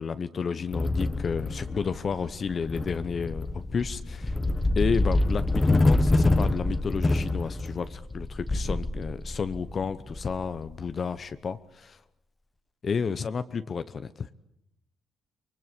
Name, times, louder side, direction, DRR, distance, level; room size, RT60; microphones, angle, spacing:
voice 1, 0.0-4.4 4.8-12.0 12.8-14.3, left 5 dB, 45° left, 12 dB, 0.9 m, -31 dB
sound 1, 0.7-10.9, left 2 dB, 20° left, 1.4 m, -26 dB
25.0 x 20.5 x 8.4 m, 0.80 s
cardioid pair, 90°, 0 cm